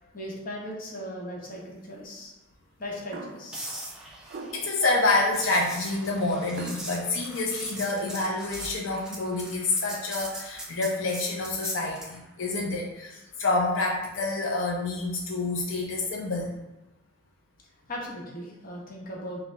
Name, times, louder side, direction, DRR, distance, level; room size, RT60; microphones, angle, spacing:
voice 1, 0.0-2.3 2.8-3.6 17.9-19.4, equal, 45° left, -3 dB, 1.0 m, -38 dB
sound 1, 3.1-3.6 4.2-4.8 6.6-6.9, right 3 dB, 55° right, 0.4 m, -40 dB
sound 2, 3.5-12.2 16.4-16.6, right 1 dB, 5° right, 0.6 m, -41 dB
voice 2, 4.5-16.6, left 2 dB, 90° left, -1 dB, 0.6 m, -28 dB
4.1 x 2.2 x 3.9 m, 1.0 s
head